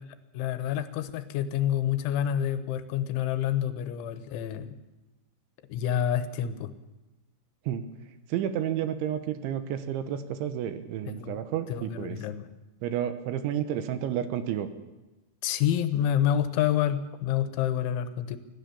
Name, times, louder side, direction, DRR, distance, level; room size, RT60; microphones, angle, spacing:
voice 1, 0.3-4.8 5.7-6.7 11.1-11.4 11.7-12.5 15.4-18.4, left 10 dB, 80° left, 11 dB, 3.4 m, -28 dB
voice 2, 8.3-12.2 12.8-14.7, right 10 dB, 80° right, 10 dB, 3.4 m, -31 dB
25.0 x 16.0 x 7.0 m, 1.1 s
omnidirectional pair, 5.5 m